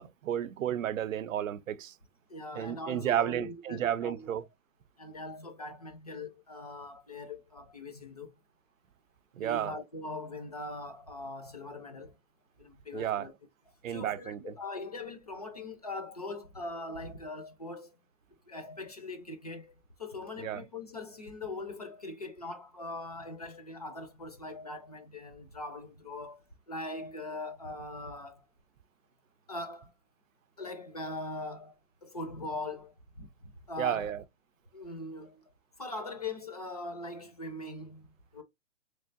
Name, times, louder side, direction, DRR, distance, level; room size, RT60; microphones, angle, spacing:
voice 1, 0.0-1.9 2.5-4.4 9.4-9.7 12.9-13.3 13.8-14.6 20.4-20.6 33.8-34.2, right 10 dB, 90° right, 0.6 m, -32 dB
voice 2, 2.3-4.3 5.0-8.3 9.4-12.1 12.6-13.3 13.9-17.9 18.5-19.7 20.0-26.4 26.7-28.5 29.5-29.9 30.6-31.7 32.0-34.1 34.7-35.4 35.8-38.1 38.3-38.4, left 2 dB, 30° left, 0.4 m, -41 dB
3.6 x 3.3 x 2.5 m
hypercardioid pair, 175°, 38 cm